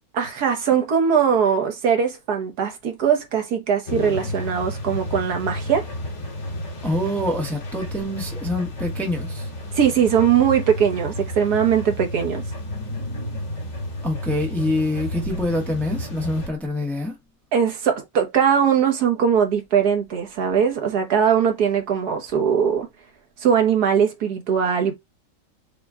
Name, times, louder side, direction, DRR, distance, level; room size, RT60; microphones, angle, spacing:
voice 1, 0.1-5.9 9.7-12.4 17.5-22.9 23.4-24.9, right 7 dB, 80° right, 1.6 m, -20 dB
sound 1, 3.9-16.5, left 1 dB, 70° left, 2.4 m, -31 dB
voice 2, 6.8-9.5 14.0-17.2, left 1 dB, ahead, 0.8 m, -25 dB
5.8 x 2.3 x 3.6 m
omnidirectional pair, 1.7 m